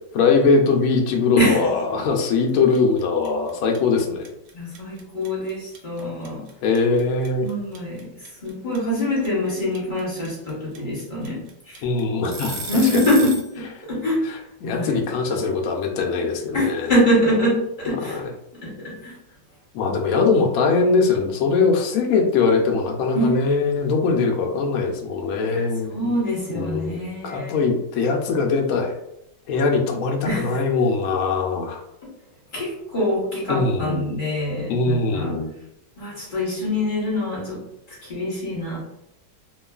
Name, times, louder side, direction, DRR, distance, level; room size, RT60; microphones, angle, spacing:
voice 1, 0.1-4.3 6.6-7.5 11.8-12.7 12.9-13.0 14.6-16.9 17.9-18.3 19.7-25.9 26.5-29.0 29.5-31.8 33.5-34.1 34.7-35.5, left 4 dB, 75° left, 2 dB, 0.7 m, -21 dB
sound 1, 2.2-2.5 2.7-13.5, right 3 dB, 90° right, 1.3 m, -34 dB
voice 2, 4.5-6.4 7.4-8.1 8.4-11.4 11.7-11.8 12.7-14.3 14.6-15.0 16.5-18.2 18.6-19.1 23.1-23.5 25.5-27.5 30.2-30.6 32.5-35.3 36.0-37.6 37.9-38.8, left 1 dB, 35° left, -6 dB, 0.9 m, -24 dB
3.0 x 2.3 x 2.3 m, 0.81 s
omnidirectional pair, 2.0 m